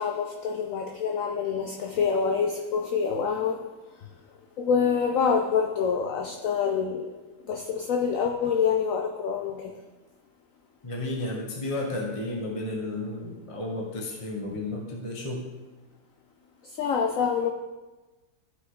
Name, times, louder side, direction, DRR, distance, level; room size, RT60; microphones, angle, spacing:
voice 1, 0.0-3.6 4.6-7.1 7.5-9.7 16.8-17.5, left 6 dB, 65° left, 3 dB, 0.9 m, -26 dB
voice 2, 10.8-15.5, left 2 dB, 20° left, -2 dB, 1.2 m, -32 dB
14.5 x 5.8 x 3.8 m, 1.2 s
omnidirectional pair, 1.8 m